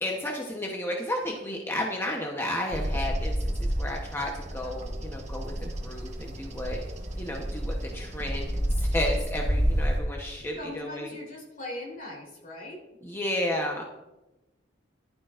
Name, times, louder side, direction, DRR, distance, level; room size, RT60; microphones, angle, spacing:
voice 1, 0.0-6.8 7.2-11.2 13.0-13.9, left 1 dB, 15° left, -1 dB, 1.0 m, -32 dB
Bird vocalization bird call bird song, 2.7-10.0, equal, 40° right, 1.1 m, -30 dB
voice 2, 10.5-13.0, left 1 dB, 50° left, -2 dB, 3.6 m, -40 dB
15.0 x 11.5 x 2.5 m, 1.0 s
head